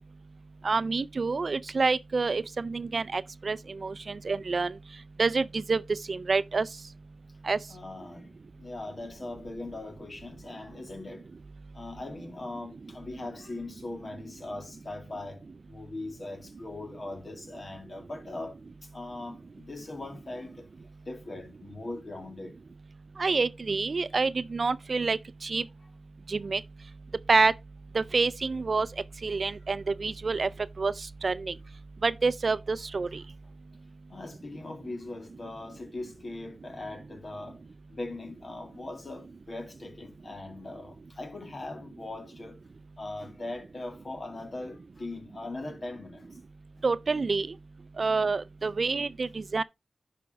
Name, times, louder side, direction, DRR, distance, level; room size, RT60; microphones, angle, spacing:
voice 1, 0.6-4.7 5.2-6.7 7.4-7.6 23.2-25.6 26.3-26.6 27.3-27.5 27.9-28.9 29.2-30.5 30.8-30.9 31.2-31.5 32.0-33.2 46.8-47.5 48.0-49.6, right 4 dB, 60° right, 0.4 m, -27 dB
voice 2, 7.7-8.3 8.6-11.2 11.7-18.6 18.9-20.7 21.1-22.6 24.2-24.3 34.1-37.6 37.9-42.6 43.0-46.3 48.0-48.1 48.6-48.7, left 2 dB, 55° left, 2.1 m, -40 dB
10.5 x 5.1 x 3.3 m
cardioid pair, 50°, 0 cm